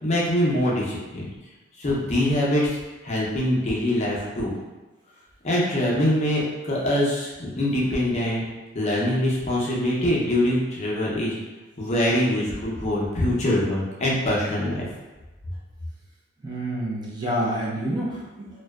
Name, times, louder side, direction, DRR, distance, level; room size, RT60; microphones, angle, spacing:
voice 1, 0.0-1.2 1.8-2.8 3.0-4.5 5.4-8.4 8.7-11.4 11.8-14.9, left 1 dB, 35° left, -5 dB, 0.5 m, -23 dB
voice 2, 16.4-18.5, right 1 dB, 20° right, -5 dB, 0.4 m, -28 dB
2.5 x 2.2 x 2.2 m, 1.1 s
head